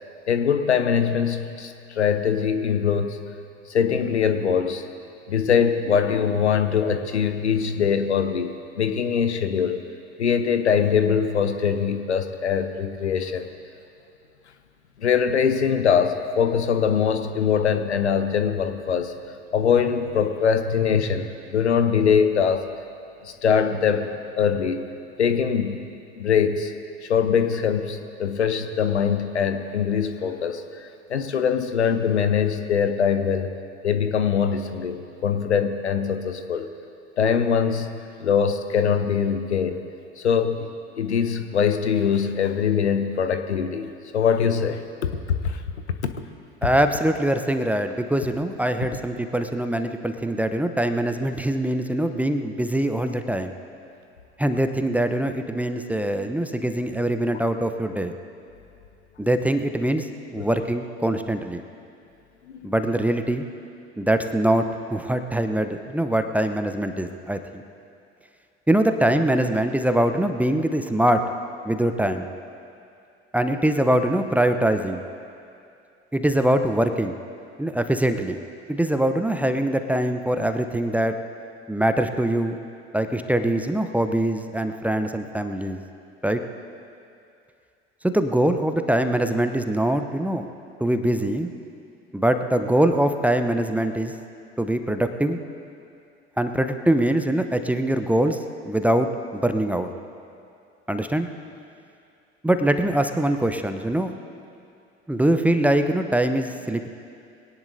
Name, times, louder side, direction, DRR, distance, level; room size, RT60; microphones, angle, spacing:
voice 1, 0.3-3.2 3.7-4.8 5.3-9.8 10.2-13.5 15.0-19.1 19.5-22.7 23.2-24.1 24.4-24.8 25.2-25.8 26.2-26.7 27.1-30.6 31.1-33.5 33.8-36.7 37.2-37.9 38.2-39.8 40.2-40.7 41.0-43.9 44.1-45.6 46.0-46.1 60.4-60.5 62.5-62.7, left 7 dB, 80° left, 9 dB, 0.9 m, -22 dB
voice 2, 46.6-53.5 54.4-58.1 59.2-60.1 60.3-61.6 62.6-63.5 64.0-67.6 68.7-71.2 71.6-72.3 73.3-75.0 76.1-77.2 77.6-78.4 78.7-81.1 81.7-82.6 82.9-85.8 86.2-86.4 88.0-90.4 90.8-91.5 92.1-94.1 94.6-95.4 96.4-98.4 98.6-99.9 100.9-101.3 102.4-104.1 105.1-106.9, right 1 dB, 5° right, 7 dB, 0.8 m, -23 dB
23.0 x 17.5 x 2.7 m, 2.5 s
figure-of-eight pair, 65°, 33 cm